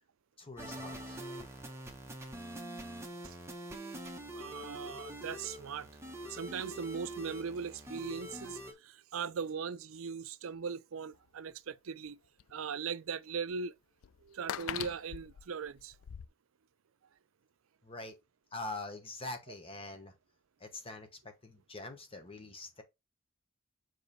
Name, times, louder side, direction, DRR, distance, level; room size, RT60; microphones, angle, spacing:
voice 1, 0.4-1.2 17.8-18.1 18.5-20.1 20.6-22.8, left 2 dB, 25° left, 1.1 m, -44 dB
sound 1, 0.6-8.7, right 1 dB, 15° right, 1.1 m, -45 dB
voice 2, 4.3-5.9 6.2-12.2 12.5-13.7 14.2-15.9, right 6 dB, 75° right, 0.5 m, -39 dB
sound 2, 11.1-11.2 12.1-12.2 12.4-12.5 13.5-13.6 14.0-16.3, left 9 dB, 75° left, 0.4 m, -41 dB
7.2 x 3.1 x 4.2 m
head